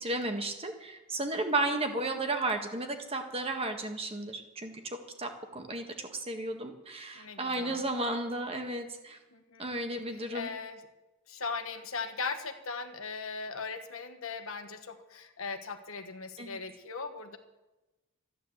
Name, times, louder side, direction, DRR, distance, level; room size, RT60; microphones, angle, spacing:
voice 1, 0.0-9.2 9.6-10.5 16.4-16.6, right 2 dB, 25° right, 5 dB, 1.6 m, -34 dB
voice 2, 7.1-7.8 9.3-9.7 10.3-10.8 11.3-17.4, left 4 dB, 70° left, 7 dB, 1.5 m, -39 dB
14.0 x 10.0 x 8.0 m, 1.0 s
head